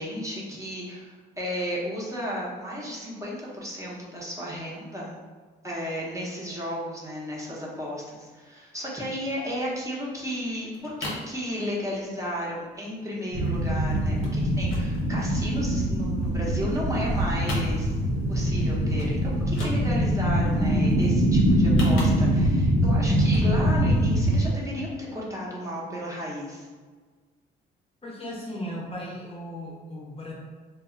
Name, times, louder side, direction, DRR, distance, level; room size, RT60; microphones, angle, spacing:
voice 1, 0.0-5.2 5.6-17.9 18.3-26.7, equal, 15° right, -5 dB, 0.7 m, -33 dB
sound 1, 10.5-11.3 11.7-12.1 12.4-12.5 12.7-12.9 13.2-13.7 14.2-14.4 14.7-15.9 16.3-17.1 17.3-18.2 18.6-18.7 19.0-19.2 19.4-20.2 21.5-22.6 23.2-23.5 23.9-24.0, left 1 dB, 80° left, 0.9 m, -38 dB
sound 2, 13.3-24.5, equal, 55° right, 0.7 m, -23 dB
voice 2, 28.0-30.3, equal, 30° left, -4 dB, 0.6 m, -36 dB
2.1 x 2.0 x 3.6 m, 1.5 s
cardioid pair, 90°, 20 cm